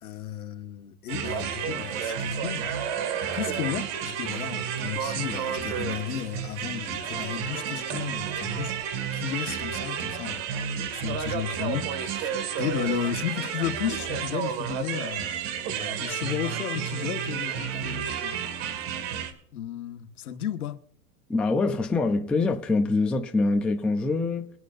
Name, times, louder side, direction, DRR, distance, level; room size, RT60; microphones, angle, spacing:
voice 1, 0.0-2.7 3.3-8.7 9.1-10.5 10.9-15.4 15.8-18.4 19.5-20.8, left 11 dB, 75° left, 1.6 m, -34 dB
sound 1, 1.1-19.3, right 8 dB, 45° right, 2.1 m, -31 dB
voice 2, 21.3-24.5, left 3 dB, 5° left, 0.4 m, -24 dB
23.5 x 9.6 x 2.6 m
hypercardioid pair, 130°, 44 cm